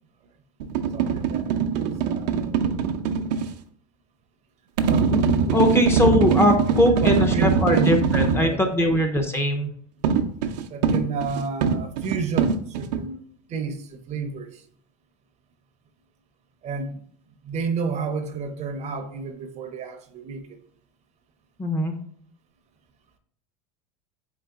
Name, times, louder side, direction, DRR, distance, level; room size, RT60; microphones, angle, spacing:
sound 1, 0.6-3.5 4.8-8.5 10.0-13.0, right 6 dB, 85° right, 0.5 m, -22 dB
voice 1, 0.9-2.6 4.9-5.4 7.0-7.9 8.4-8.6 10.7-13.2 13.5-14.6 16.6-17.0 17.4-20.4, right 5 dB, 35° right, 0.6 m, -31 dB
voice 2, 5.1-9.7 21.6-21.9, left 1 dB, 10° left, 0.5 m, -21 dB
3.9 x 3.8 x 3.5 m
supercardioid pair, 125°, 21 cm